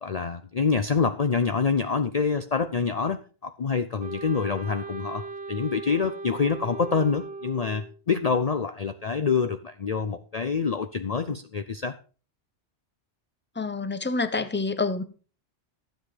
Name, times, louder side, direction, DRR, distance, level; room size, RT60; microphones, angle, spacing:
voice 1, 0.0-11.9, left 5 dB, 40° left, 9 dB, 0.7 m, -26 dB
Wind instrument woodwind instrument, 4.0-8.0, right 3 dB, 65° right, 1.4 m, -38 dB
voice 2, 13.6-15.0, left 3 dB, 10° left, 11 dB, 0.9 m, -27 dB
13.0 x 7.9 x 5.1 m, 0.37 s
omnidirectional pair, 1.1 m